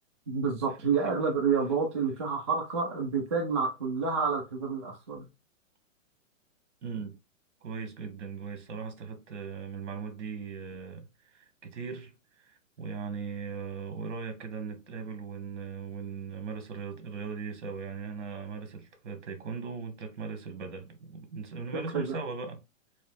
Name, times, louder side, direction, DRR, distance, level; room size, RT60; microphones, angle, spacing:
voice 1, 0.3-5.3 21.7-22.2, right 5 dB, 25° right, 0.4 m, -29 dB
voice 2, 6.8-7.2 7.6-12.1 12.4-22.6, right 5 dB, 60° right, 1.3 m, -39 dB
3.1 x 2.8 x 3.6 m
hypercardioid pair, 165°, 39 cm